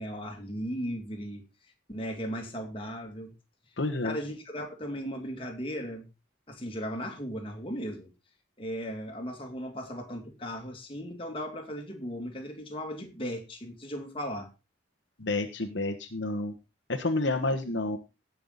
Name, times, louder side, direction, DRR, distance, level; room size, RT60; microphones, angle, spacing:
voice 1, 0.0-1.4 1.9-3.3 4.0-6.1 6.5-8.1 8.6-14.5, equal, 30° left, 2.3 m, -37 dB
voice 2, 3.8-4.2 15.2-16.5 16.9-18.0, left 2 dB, 70° left, 1.3 m, -29 dB
17.5 x 5.9 x 3.9 m
head